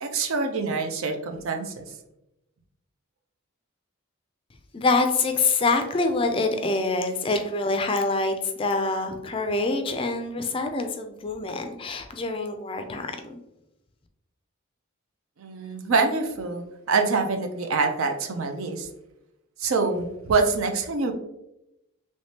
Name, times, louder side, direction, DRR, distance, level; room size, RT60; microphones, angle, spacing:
voice 1, 0.0-1.9 15.4-18.9 19.6-21.1, right 4 dB, 75° right, 5 dB, 0.5 m, -25 dB
voice 2, 4.7-13.3, left 3 dB, 25° left, 6 dB, 0.3 m, -25 dB
3.4 x 3.1 x 2.7 m, 0.87 s
head